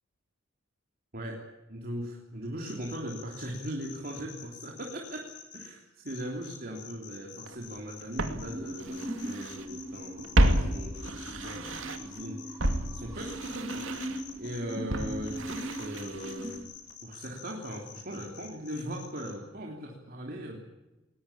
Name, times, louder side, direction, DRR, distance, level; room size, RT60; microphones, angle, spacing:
voice 1, 1.1-13.9 14.4-16.7 17.0-20.6, equal, 45° right, 0 dB, 3.2 m, -39 dB
sound 1, 2.6-5.7 6.1-19.3, left 8 dB, 55° left, 5.1 m, -48 dB
Walk footsteps, 7.5-7.6 8.2-9.7 9.9-12.2 12.6-16.6 16.9-17.0, right 1 dB, 65° right, 2.6 m, -30 dB
sound 2, 8.2-16.6, right 1 dB, 15° right, 1.8 m, -41 dB
21.0 x 20.0 x 8.6 m, 1.0 s
head